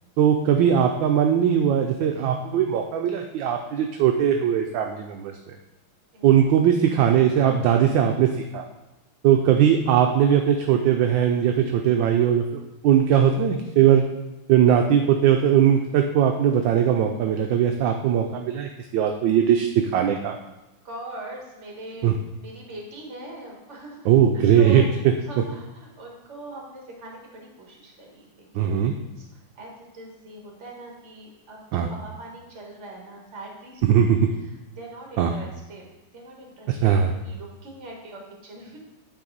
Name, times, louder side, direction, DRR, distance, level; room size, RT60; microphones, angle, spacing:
voice 1, 0.2-5.6 6.2-8.6 9.2-14.0 14.5-20.3 22.0-22.1 24.1-24.8 28.5-28.9 31.7-31.9 33.8-34.3 35.2-35.3 36.7-37.1, right 9 dB, 75° right, 4 dB, 1.1 m, -20 dB
voice 2, 20.8-22.1 22.4-24.1 24.3-24.9 25.2-33.8 34.1-34.2 34.4-35.9 36.1-38.8, right 1 dB, 35° right, 0 dB, 1.6 m, -42 dB
8.8 x 4.2 x 3.9 m, 1.0 s
omnidirectional pair, 2.3 m